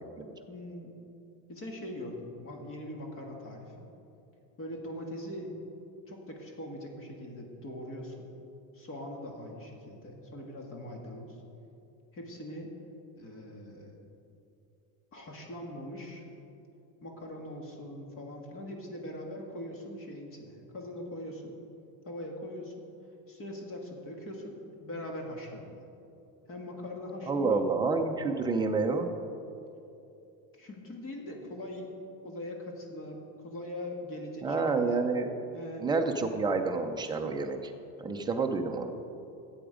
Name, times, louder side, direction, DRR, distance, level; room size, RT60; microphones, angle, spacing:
voice 1, 0.5-0.9 1.5-3.9 4.6-5.5 6.1-8.3 8.7-11.4 12.1-12.7 13.2-14.0 15.1-16.2 17.0-21.6 22.0-22.9 23.3-25.8 26.5-27.7 30.5-31.9 32.2-35.0 35.5-35.9, left 1 dB, 30° left, 1 dB, 1.7 m, -41 dB
voice 2, 27.3-29.1 34.4-35.3 35.8-37.7 38.0-38.9, right 4 dB, 10° right, 3 dB, 0.6 m, -29 dB
13.5 x 8.1 x 5.0 m, 2.8 s
cardioid pair, 160°, 42 cm